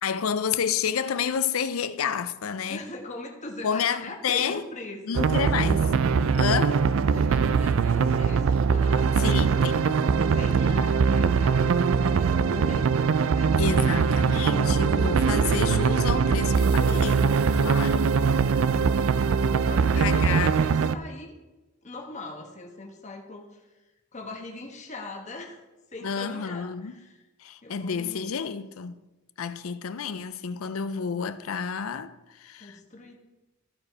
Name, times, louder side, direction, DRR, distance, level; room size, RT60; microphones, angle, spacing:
voice 1, 0.0-2.8 3.6-4.6 5.1-5.9 6.4-6.8 9.2-10.0 13.6-18.1 20.0-20.6 26.0-27.0 27.4-29.0 29.4-32.1 32.4-32.8, left 7 dB, 80° left, 0.5 m, -29 dB
voice 2, 2.7-5.3 7.1-9.5 9.9-14.0 18.6-21.4 21.8-23.7 24.1-25.6 25.9-27.2 27.6-28.3 32.6-33.2, left 2 dB, 35° left, 1.3 m, -41 dB
sound 1, 5.1-21.0, right 5 dB, 70° right, 0.4 m, -22 dB
14.0 x 4.9 x 4.7 m
head